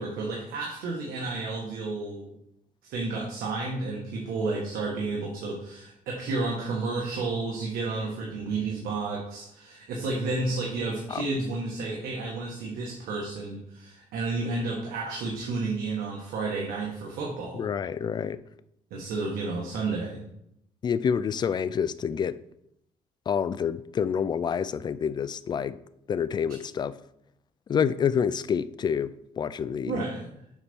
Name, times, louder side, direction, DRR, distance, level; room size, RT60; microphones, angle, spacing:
voice 1, 0.0-2.3 2.8-17.7 18.9-20.2 29.9-30.3, right 3 dB, 85° right, 1.5 m, -31 dB
voice 2, 17.5-18.4 20.8-22.4 23.3-25.8 26.1-26.9 27.7-30.0, left 7 dB, 30° left, 0.3 m, -28 dB
7.1 x 4.1 x 5.3 m
cardioid pair, 130°, 15 cm